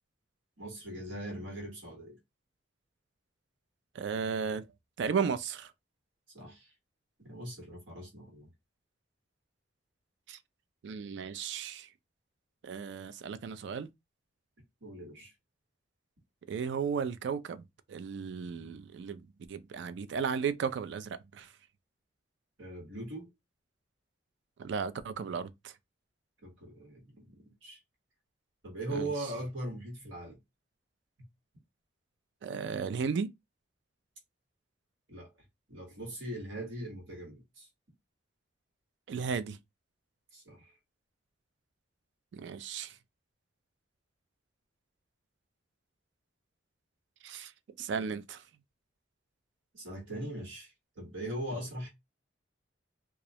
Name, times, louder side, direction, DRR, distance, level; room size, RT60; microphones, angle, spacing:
voice 1, 0.6-2.2 6.3-6.7 7.2-8.5 14.8-15.3 22.6-23.3 26.4-27.8 28.6-30.4 35.1-35.3 35.7-37.7 40.3-40.7 49.7-51.9, right 1 dB, 80° right, 1.3 m, -40 dB
voice 2, 3.9-4.6 5.0-5.7 10.3-10.4 10.8-11.9 12.6-13.9 16.5-21.5 24.6-25.7 28.9-29.1 32.4-33.3 39.1-39.6 42.3-42.9 47.2-47.5 47.8-48.4, right 6 dB, 65° right, 0.3 m, -35 dB
2.3 x 2.0 x 2.7 m
head